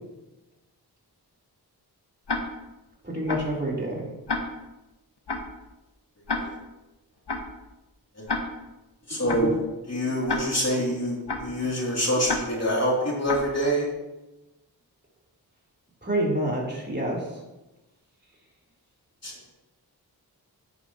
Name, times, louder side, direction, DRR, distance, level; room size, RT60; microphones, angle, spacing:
Tick-tock, 2.3-2.4 3.3-3.4 4.3-4.4 5.3-5.4 6.3-6.4 7.3-7.4 8.3-8.4 9.3-9.4 10.3-10.4 11.3-11.4 12.3-12.4 13.3-13.4, left 3 dB, 80° left, 1.3 m, -28 dB
voice 1, 3.0-4.1 16.0-17.3, right 1 dB, 25° right, -4 dB, 3.7 m, -27 dB
voice 2, 9.1-13.9 19.2-19.5, equal, 40° left, -4 dB, 3.3 m, -26 dB
11.0 x 9.3 x 3.1 m, 1.0 s
wide cardioid pair, 45°, 40 cm